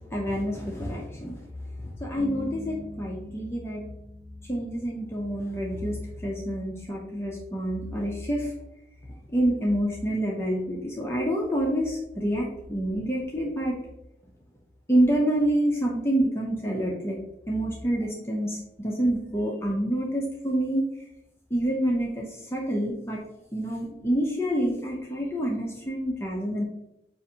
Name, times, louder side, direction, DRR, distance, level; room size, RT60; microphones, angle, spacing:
voice 1, 0.0-1.4 1.8-3.8 4.5-8.5 9.3-13.8 14.9-17.2 17.5-20.8 21.5-23.2 23.5-26.6, right 1 dB, 15° left, -3 dB, 0.5 m, -27 dB
sound 1, 2.2-5.2, equal, 30° right, 1.3 m, -42 dB
5.6 x 2.5 x 2.7 m, 0.85 s
head